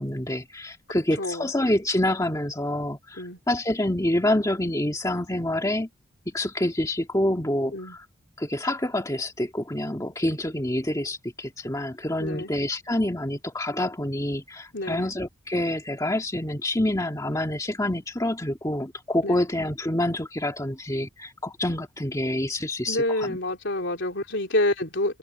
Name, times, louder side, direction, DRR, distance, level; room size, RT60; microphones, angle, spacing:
voice 1, 0.0-5.9 6.3-8.0 8.4-23.4, left 1 dB, 15° left, 1.9 m, -27 dB
voice 2, 0.9-1.5 3.2-3.4 7.7-8.0 12.2-12.5 14.7-15.1 19.2-19.4 22.9-25.2, left 1 dB, 60° left, 3.5 m, -28 dB
open air
head